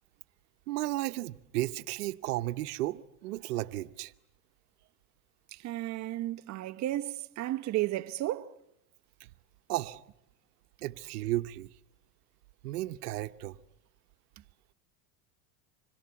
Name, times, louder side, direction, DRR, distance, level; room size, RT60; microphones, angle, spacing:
voice 1, 0.7-4.1 9.2-9.3 9.7-10.0 10.8-11.7 12.6-13.6, right 17 dB, 90° right, 1.0 m, -34 dB
voice 2, 5.5-8.6, right 15 dB, 40° right, 1.0 m, -33 dB
26.0 x 25.5 x 8.3 m
supercardioid pair, 125°, 45 cm